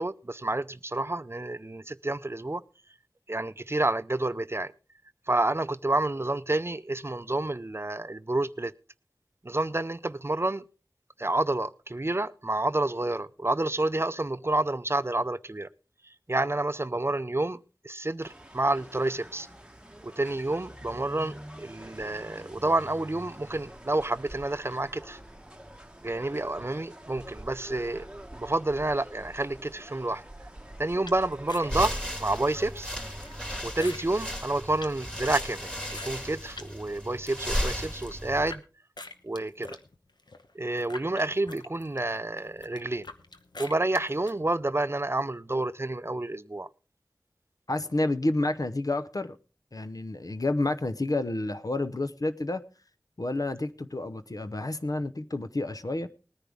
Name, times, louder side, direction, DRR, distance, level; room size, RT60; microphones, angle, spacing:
voice 1, 0.0-2.6 3.3-4.7 5.3-8.7 9.4-10.6 11.2-15.7 16.3-19.5 20.0-25.2 26.0-28.1 28.4-30.2 30.8-32.9 33.6-38.6 39.2-39.8 40.5-43.1 43.6-46.7, right 2 dB, 35° right, 0.5 m, -29 dB
sound 1, 18.2-33.6, right 1 dB, 15° right, 1.1 m, -46 dB
sound 2, 31.0-36.7 37.1-38.6 39.0-44.3, left 3 dB, 90° left, 1.0 m, -46 dB
sound 3, 31.6-38.5, equal, 15° left, 3.5 m, -35 dB
voice 2, 47.7-49.4 49.7-52.6 53.2-56.1, left 2 dB, 55° left, 0.9 m, -29 dB
19.5 x 10.0 x 3.5 m
wide cardioid pair, 45°, 7 cm